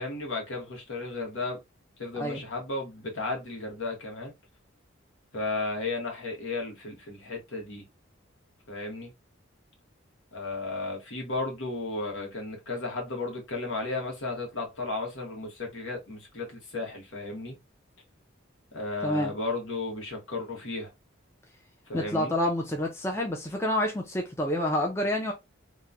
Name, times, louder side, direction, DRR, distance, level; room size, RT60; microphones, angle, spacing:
voice 1, 0.0-1.6 2.0-4.3 5.3-7.9 8.7-9.1 10.3-17.6 18.7-20.9 21.9-22.3, left 3 dB, 70° left, 1.1 m, -34 dB
voice 2, 21.9-25.3, left 1 dB, 15° left, 0.4 m, -28 dB
3.0 x 2.2 x 2.5 m
head